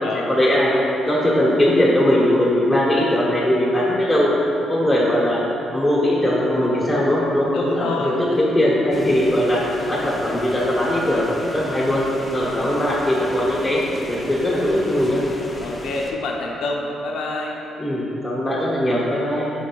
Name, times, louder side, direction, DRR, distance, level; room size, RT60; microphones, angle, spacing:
voice 1, 0.1-4.3 4.6-5.4 5.7-12.1 12.3-15.3 17.8-19.5, left 1 dB, 5° left, -6 dB, 1.2 m, -20 dB
voice 2, 7.5-8.2 15.6-17.6, left 2 dB, 80° left, 0 dB, 0.6 m, -27 dB
sound 1, 8.9-16.1, left 1 dB, 20° left, 0.7 m, -36 dB
5.3 x 4.4 x 4.6 m, 2.9 s
cardioid pair, 90°, 0 cm